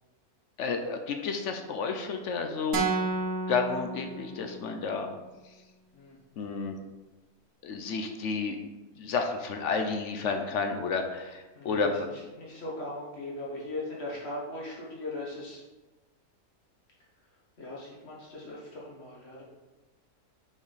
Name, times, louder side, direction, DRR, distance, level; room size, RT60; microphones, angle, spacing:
voice 1, 0.6-2.9 3.5-5.1 6.4-6.8 7.6-8.6 9.0-11.9, left 4 dB, 65° left, 5 dB, 0.8 m, -31 dB
sound 1, 2.7-4.8, right 4 dB, 75° right, 1.3 m, -31 dB
voice 2, 11.6-15.6 17.6-19.4, left 2 dB, 45° left, -5 dB, 1.8 m, -39 dB
5.7 x 4.4 x 4.0 m, 1.1 s
omnidirectional pair, 1.6 m